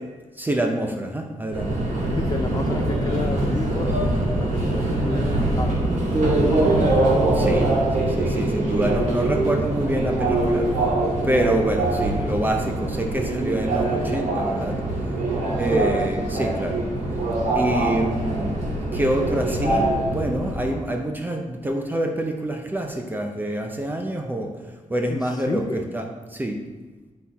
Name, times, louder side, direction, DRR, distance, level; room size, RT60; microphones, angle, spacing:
voice 1, 0.4-1.7 7.3-7.7 8.0-10.7 11.2-14.8 15.6-16.8 17.5-18.6 18.9-24.5 24.9-26.6, right 1 dB, 15° right, 3 dB, 0.6 m, -26 dB
Subway metro underground, 1.5-20.8, right 2 dB, 80° right, 2.2 m, -23 dB
voice 2, 2.1-3.9 4.2-5.8 15.7-15.9 25.1-25.9, left 3 dB, 30° left, 5 dB, 0.5 m, -31 dB
10.5 x 4.2 x 4.1 m, 1.3 s
wide cardioid pair, 145°, 13 cm